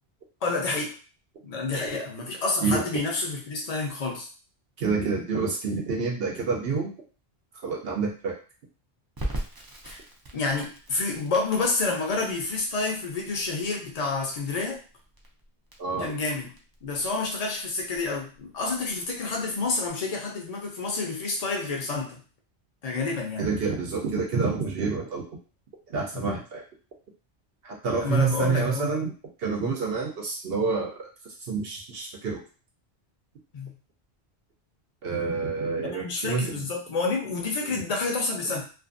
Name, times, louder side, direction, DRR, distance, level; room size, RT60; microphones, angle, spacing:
voice 1, 0.4-0.9 1.4-4.3 9.8-10.0 10.3-14.8 16.0-16.5 16.8-22.2 22.8-23.5 26.1-26.3 28.0-29.1 33.5-33.7 35.8-38.6, left 3 dB, 45° left, 0 dB, 0.6 m, -29 dB
voice 2, 4.8-6.9 7.6-8.4 15.8-16.1 23.4-25.2 25.9-26.6 27.6-29.1 29.4-30.9 31.5-32.4 35.0-36.6 37.7-37.8, right 4 dB, 70° right, 0 dB, 0.8 m, -28 dB
Crackle, 9.2-19.9, right 1 dB, 40° right, 0.3 m, -41 dB
2.5 x 2.4 x 2.5 m, 0.37 s
omnidirectional pair, 1.1 m